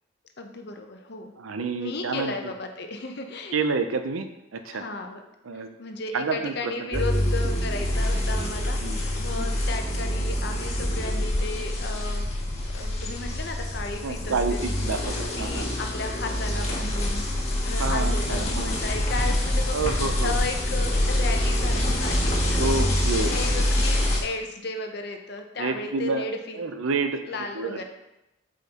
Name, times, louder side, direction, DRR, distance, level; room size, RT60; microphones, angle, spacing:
voice 1, 0.4-1.3 1.8-3.6 4.7-5.2 5.5-12.3 12.7-14.7 15.3-17.3 17.7-22.8 23.2-26.6 27.3-27.8, left 3 dB, 55° left, 4 dB, 0.7 m, -34 dB
voice 2, 1.4-2.5 3.5-4.3 4.5-4.8 5.4-5.7 6.1-7.0 8.8-9.0 9.4-9.6 14.0-15.7 17.8-18.8 19.7-20.4 22.4-23.6 25.6-26.2 26.5-27.8, right 4 dB, 85° right, 8 dB, 0.6 m, -29 dB
sound 1, 6.9-24.2, left 1 dB, 35° left, 1.3 m, -26 dB
7.7 x 5.1 x 2.9 m, 0.91 s
head